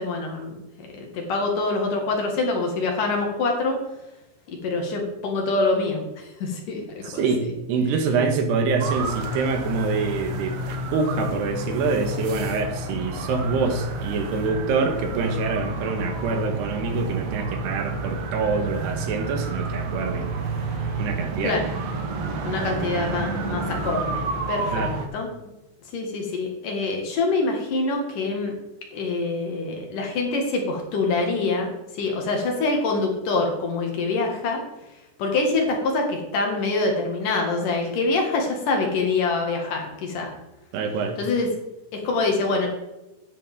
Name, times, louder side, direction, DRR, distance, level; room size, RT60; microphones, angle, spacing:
voice 1, 0.0-3.8 4.5-7.3 20.7-20.9 21.4-21.7 22.4-24.2 24.5-25.3 25.9-28.5 28.9-34.6 35.2-40.3 41.2-41.5 41.9-42.7, left 3 dB, 60° left, 1 dB, 3.1 m, -25 dB
voice 2, 7.0-10.6 10.9-20.4 21.0-21.6 24.7-24.9 40.7-41.2, right 4 dB, 85° right, 5 dB, 3.4 m, -25 dB
sound 1, 8.8-25.1, right 3 dB, 65° right, 1.7 m, -30 dB
10.5 x 9.6 x 3.6 m, 0.99 s
omnidirectional pair, 4.6 m